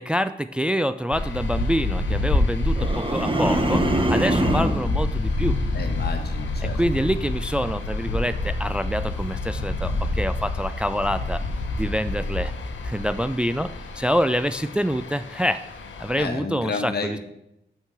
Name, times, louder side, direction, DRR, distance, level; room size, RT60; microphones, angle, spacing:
voice 1, 0.0-5.6 6.6-11.4 11.8-12.5 12.8-13.7 14.0-15.6 16.0-17.2, equal, 5° right, 12 dB, 0.3 m, -26 dB
sound 1, 1.1-16.3, left 2 dB, 75° left, 1.1 m, -28 dB
sound 2, 2.8-4.9, right 1 dB, 25° right, 1.3 m, -22 dB
voice 2, 5.7-6.8 16.2-17.2, left 4 dB, 55° left, 5 dB, 1.4 m, -31 dB
6.6 x 6.3 x 6.3 m, 0.84 s
cardioid pair, 50°, 19 cm